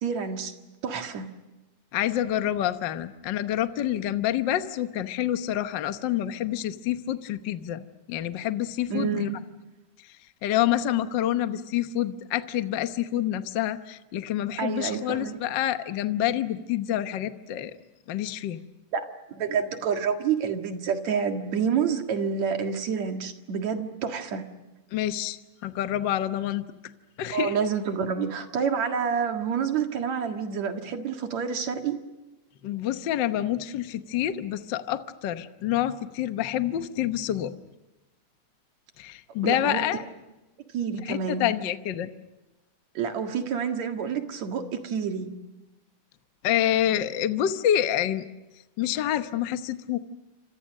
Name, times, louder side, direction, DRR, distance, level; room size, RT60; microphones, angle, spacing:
voice 1, 0.0-0.5 0.8-1.3 8.9-9.4 14.6-15.4 18.9-24.5 27.3-32.0 39.4-39.8 40.7-41.5 42.9-45.3, right 6 dB, 65° right, 5 dB, 3.0 m, -28 dB
voice 2, 1.9-7.8 8.1-9.3 10.4-17.7 18.1-18.6 24.9-26.6 27.2-27.6 32.6-37.5 39.0-40.0 41.0-42.1 46.4-48.2 48.8-50.0, left 11 dB, 70° left, 9 dB, 1.1 m, -27 dB
28.5 x 26.0 x 6.5 m, 1.1 s
omnidirectional pair, 3.5 m